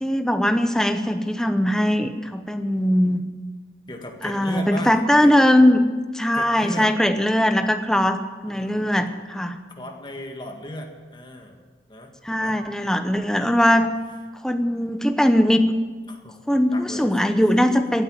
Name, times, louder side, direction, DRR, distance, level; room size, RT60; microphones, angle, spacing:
voice 1, 0.0-3.2 4.2-5.9 6.1-9.6 12.2-13.9 14.4-15.6 16.5-18.0, left 1 dB, 5° left, 7 dB, 0.8 m, -20 dB
voice 2, 3.9-4.9 5.2-5.3 6.3-6.9 8.4-9.0 9.8-11.6 11.9-12.6 13.3-13.8 16.1-16.4 16.7-17.1, left 1 dB, 25° left, 3 dB, 1.9 m, -36 dB
16.0 x 8.7 x 8.9 m, 1.4 s
head